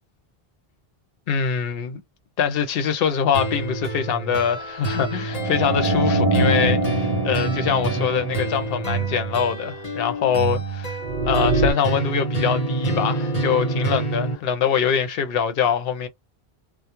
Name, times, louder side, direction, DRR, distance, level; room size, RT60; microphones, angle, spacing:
voice 1, 1.3-2.0 2.4-16.1, left 7 dB, 70° left, 0.7 m, -24 dB
sound 1, 3.3-14.3, right 3 dB, 40° left, 1.0 m, -27 dB
sound 2, 5.3-9.2 11.0-11.7, right 2 dB, 60° right, 0.6 m, -23 dB
2.2 x 2.1 x 2.8 m
omnidirectional pair, 1.0 m